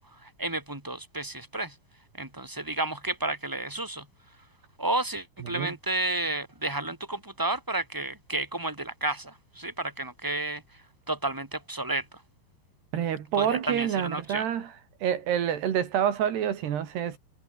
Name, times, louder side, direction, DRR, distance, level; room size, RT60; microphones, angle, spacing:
voice 1, 0.0-1.8 2.1-4.1 4.8-12.2 13.3-14.5, right 2 dB, 5° right, 5.8 m, -32 dB
voice 2, 12.9-14.7 15.0-17.2, right 9 dB, 80° right, 4.5 m, -27 dB
omnidirectional pair, 4.7 m